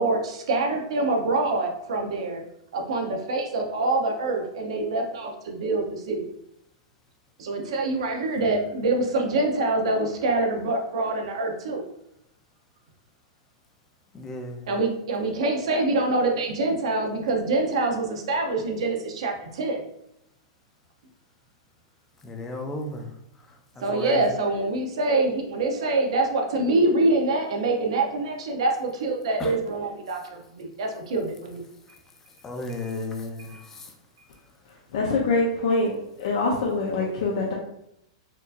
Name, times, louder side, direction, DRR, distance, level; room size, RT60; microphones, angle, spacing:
voice 1, 0.0-2.4 2.7-6.3 7.4-11.8 14.7-19.8 23.8-31.7 32.8-32.9 33.5-33.6, right 2 dB, 75° right, 2 dB, 0.8 m, -25 dB
voice 2, 14.1-14.7 22.2-23.1 23.8-24.2 29.4-29.5 32.4-33.9, left 2 dB, 15° left, 4 dB, 0.4 m, -34 dB
voice 3, 34.9-35.9 36.2-37.5, left 3 dB, 65° left, -2 dB, 0.7 m, -24 dB
4.4 x 2.7 x 2.5 m, 0.78 s
supercardioid pair, 155°, 3 cm